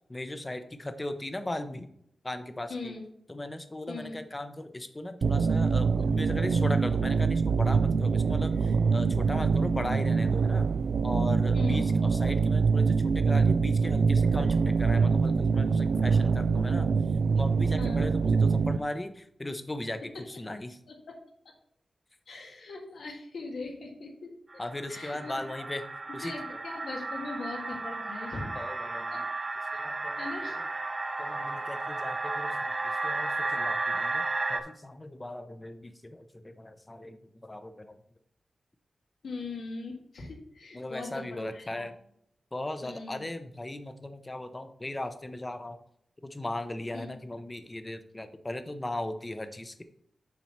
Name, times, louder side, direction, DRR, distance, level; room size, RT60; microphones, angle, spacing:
voice 1, 0.1-1.9 2.2-2.9 3.3-10.7 11.0-16.9 17.3-20.0 20.3-20.8 24.6-25.8 26.1-26.6 28.5-29.2 29.7-30.2 31.2-34.2 34.5-38.0 40.7-42.0 42.5-45.8 46.2-49.8, left 1 dB, 20° left, 9 dB, 0.7 m, -37 dB
voice 2, 2.7-3.0 3.9-4.2 11.5-11.8 17.8-18.0 20.0-20.1 20.3-20.5 20.9-21.1 22.3-24.3 24.9-25.6 26.2-28.5 29.1-29.2 29.7-29.8 30.2-30.6 39.2-41.9 42.8-43.3 46.9-47.1, left 3 dB, 85° left, 0 dB, 1.7 m, -40 dB
sound 1, 5.2-18.8, right 5 dB, 75° right, 0.3 m, -24 dB
sound 2, 24.5-34.6, right 2 dB, 25° right, 0.7 m, -33 dB
7.4 x 4.2 x 5.9 m, 0.70 s
wide cardioid pair, 130°, 0 cm